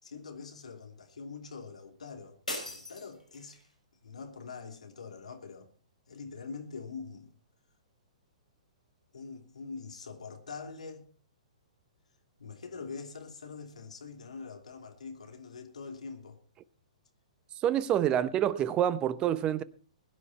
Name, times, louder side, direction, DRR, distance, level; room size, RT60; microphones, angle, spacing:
voice 1, 0.0-3.6 4.0-5.7 6.1-7.3 9.1-11.1 12.4-16.4, left 5 dB, 70° left, 2.9 m, -44 dB
sound 1, 2.5-3.7, left 1 dB, 90° left, 5.9 m, -40 dB
voice 2, 17.6-19.6, right 10 dB, 25° right, 0.8 m, -27 dB
21.0 x 9.8 x 4.3 m
figure-of-eight pair, 115°, 4 cm